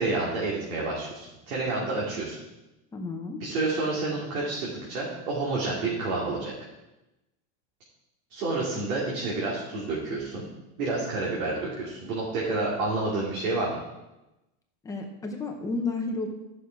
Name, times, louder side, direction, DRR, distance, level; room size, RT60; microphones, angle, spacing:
voice 1, 0.0-2.4 3.4-6.5 8.3-10.4 10.8-13.8, right 3 dB, 80° right, -5 dB, 3.0 m, -29 dB
voice 2, 2.9-3.4 14.8-16.3, left 3 dB, 10° left, 1 dB, 0.6 m, -31 dB
13.0 x 6.3 x 4.7 m, 0.99 s
supercardioid pair, 175°, 42 cm